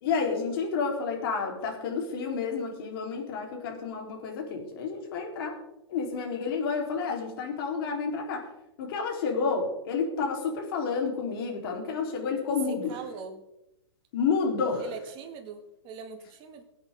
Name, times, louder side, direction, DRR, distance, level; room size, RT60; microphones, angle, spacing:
voice 1, 0.0-5.6 5.9-8.5 8.8-13.0 14.1-14.9, left 5 dB, 55° left, 1 dB, 4.2 m, -30 dB
voice 2, 12.7-13.4 14.8-16.6, right 6 dB, 35° right, 4 dB, 2.4 m, -42 dB
23.0 x 8.7 x 3.9 m, 0.90 s
hypercardioid pair, 130°, 15 cm